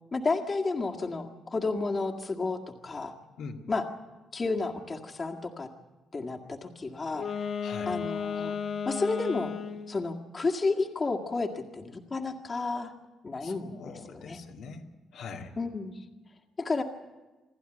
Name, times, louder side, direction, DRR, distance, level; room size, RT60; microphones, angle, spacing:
voice 1, 0.1-3.1 3.7-3.8 4.3-5.7 6.1-7.3 7.9-8.6 8.9-9.5 9.9-12.9 13.2-13.8 14.1-14.4 15.6-16.1 16.6-16.8, left 3 dB, 35° left, 2 dB, 1.9 m, -31 dB
Wind instrument woodwind instrument, 7.1-10.0, left 6 dB, 55° left, 1.0 m, -34 dB
voice 2, 7.6-8.0 13.4-14.8 15.1-15.6, left 5 dB, 80° left, 1 dB, 2.2 m, -42 dB
27.0 x 11.5 x 9.1 m, 1.2 s
cardioid pair, 90°, 0 cm